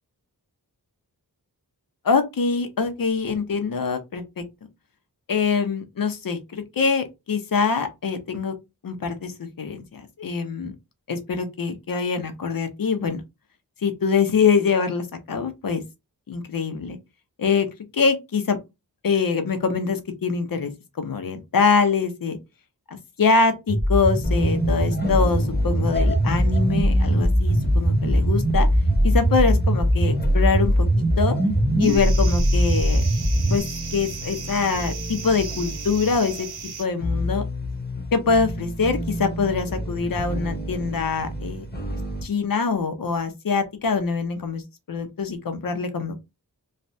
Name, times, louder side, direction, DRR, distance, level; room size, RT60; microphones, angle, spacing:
voice 1, 2.0-4.4 5.3-8.5 8.8-10.7 11.1-13.2 13.8-15.8 16.3-17.0 17.4-17.7 17.9-18.6 19.0-20.7 21.0-22.4 22.9-28.7 29.0-31.4 31.8-33.1 33.5-33.6 33.9-36.5 36.8-37.4 38.1-41.6 42.2-44.6 44.9-46.2, left 5 dB, 60° left, 0.8 m, -24 dB
sound 1, 23.7-33.6, equal, 10° right, 0.5 m, -21 dB
sound 2, 24.2-42.2, equal, 25° left, 0.9 m, -31 dB
sound 3, 31.8-36.8, right 6 dB, 75° right, 0.7 m, -36 dB
3.2 x 2.3 x 2.7 m
wide cardioid pair, 120°, 38 cm